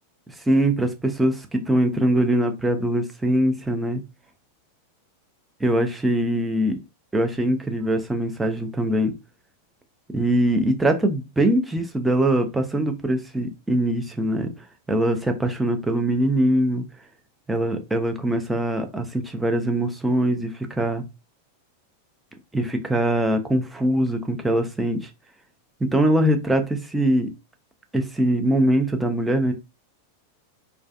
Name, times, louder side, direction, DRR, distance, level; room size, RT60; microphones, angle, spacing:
voice 1, 0.5-4.0 5.6-6.8 7.1-9.1 10.1-14.5 14.9-16.8 17.5-21.0 22.5-25.1 25.9-27.3 27.9-29.5, right 1 dB, 5° right, 0.5 m, -22 dB
2.4 x 2.2 x 2.4 m
figure-of-eight pair, 90°, 0 cm